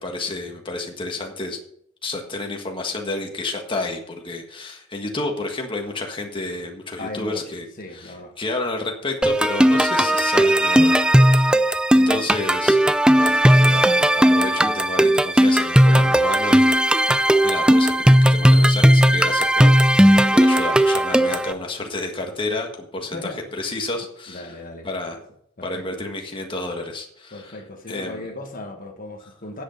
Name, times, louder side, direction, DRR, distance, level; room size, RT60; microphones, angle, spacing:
voice 1, 0.0-1.6 2.0-7.7 7.9-23.2 23.5-24.5 24.8-25.2 25.6-27.6 27.9-28.2, left 2 dB, 25° left, 2 dB, 1.6 m, -31 dB
voice 2, 7.0-7.5 7.8-8.4 11.9-12.2 20.0-20.4 23.1-23.5 24.3-24.9 25.6-26.0 27.3-29.6, left 2 dB, 45° left, 3 dB, 1.5 m, -37 dB
sound 1, 9.2-21.5, equal, 5° right, 0.4 m, -16 dB
10.0 x 8.1 x 5.7 m, 0.69 s
head